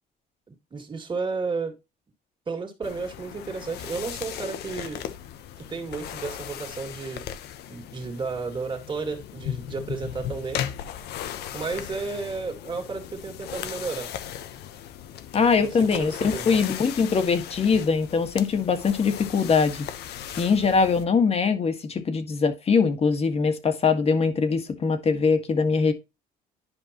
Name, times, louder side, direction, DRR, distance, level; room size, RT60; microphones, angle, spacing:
voice 1, 0.5-1.7 2.5-5.0 5.6-7.2 7.7-10.6 11.5-14.1 15.6-16.6, right 4 dB, 30° right, 2.4 m, -32 dB
sound 1, 2.8-21.0, left 10 dB, 75° left, 1.0 m, -37 dB
voice 2, 15.3-19.8 20.4-25.9, left 5 dB, 35° left, 1.7 m, -22 dB
11.0 x 5.3 x 2.9 m
cardioid pair, 110°, 17 cm